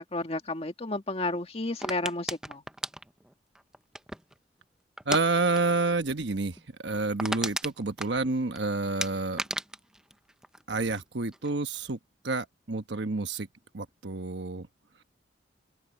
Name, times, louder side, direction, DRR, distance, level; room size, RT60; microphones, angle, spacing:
voice 1, 0.0-2.6, left 2 dB, 35° left, 2.0 m, -32 dB
sound 1, 1.8-4.4 5.0-5.3 5.5-5.8 6.1-6.2 6.6-6.7 6.9-8.6 9.0-11.0 11.3-11.8, right 1 dB, 5° right, 0.7 m, -35 dB
voice 2, 5.1-9.4 10.7-12.0 12.2-13.5 13.7-14.7, right 3 dB, 85° right, 1.2 m, -29 dB
head